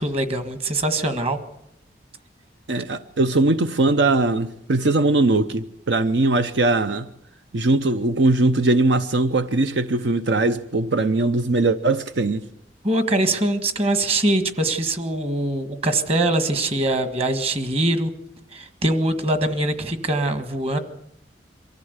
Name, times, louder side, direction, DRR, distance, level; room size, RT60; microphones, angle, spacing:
voice 1, 0.0-1.4 12.8-18.1 18.5-20.8, right 1 dB, 35° right, 1.6 m, -23 dB
voice 2, 2.7-7.1 7.5-12.4, right 2 dB, 80° right, 0.8 m, -20 dB
23.5 x 14.5 x 8.1 m
head